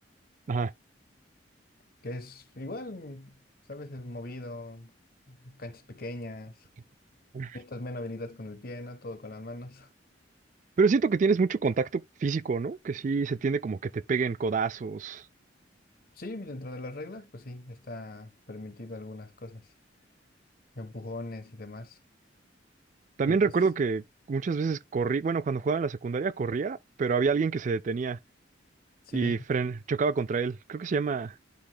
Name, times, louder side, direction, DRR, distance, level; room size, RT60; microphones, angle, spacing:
voice 1, 2.0-3.4 3.7-4.9 5.3-6.7 7.5-9.9 16.1-19.7 20.7-22.0 23.3-23.5 29.1-29.4, left 2 dB, 55° left, 1.2 m, -40 dB
voice 2, 10.8-15.2 23.2-28.2 29.1-31.3, right 4 dB, 45° right, 0.4 m, -27 dB
11.5 x 4.1 x 2.3 m
head